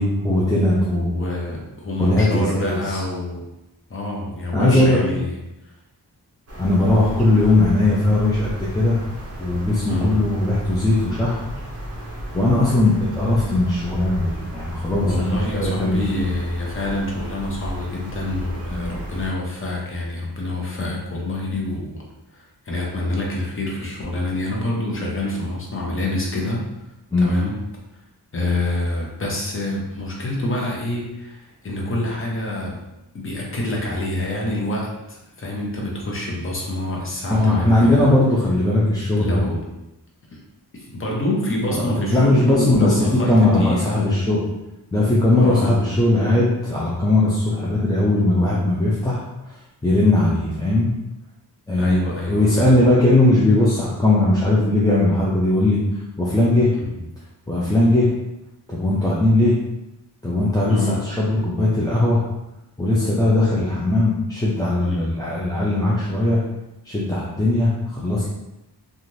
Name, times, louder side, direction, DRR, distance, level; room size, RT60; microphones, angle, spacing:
voice 1, 0.0-1.6 2.0-3.0 4.5-5.0 6.6-9.0 9.4-11.4 12.3-16.0 18.7-18.9 27.1-27.3 37.3-39.4 41.7-44.4 44.9-50.9 51.7-56.7 57.5-58.1 58.7-59.6 60.2-62.2 62.8-66.4 66.8-68.2, left 2 dB, 10° left, -7 dB, 0.4 m, -19 dB
voice 2, 0.9-3.5 3.9-5.3 9.9-10.2 15.0-22.0 22.3-26.6 27.2-27.6 28.3-32.8 33.1-38.1 39.2-39.6 40.3-40.4 40.7-44.2 45.4-45.7 51.8-52.9 57.0-57.1 60.7-61.0 64.8-65.2, left 1 dB, 30° left, -3 dB, 0.7 m, -26 dB
sound 1, 6.5-19.3, equal, 35° right, 0.6 m, -34 dB
3.1 x 2.4 x 2.6 m, 0.94 s
wide cardioid pair, 125°, 41 cm